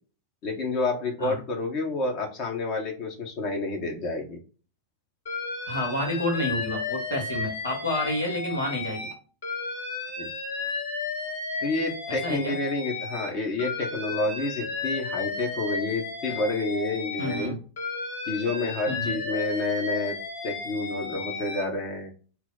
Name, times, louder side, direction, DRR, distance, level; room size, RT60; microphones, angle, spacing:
voice 1, 0.4-4.4 10.2-10.3 11.6-17.5 18.3-20.2 20.4-22.1, left 2 dB, 45° left, 1 dB, 0.9 m, -29 dB
Alarm, 5.3-9.1 9.4-13.3 13.6-17.5 17.8-21.6, left 4 dB, 65° left, 1.1 m, -33 dB
voice 2, 5.7-9.1 12.1-12.5 17.2-17.6 18.9-19.2, left 1 dB, 85° left, -3 dB, 1.4 m, -29 dB
2.8 x 2.0 x 3.9 m, 0.37 s
figure-of-eight pair, 85°, 0 cm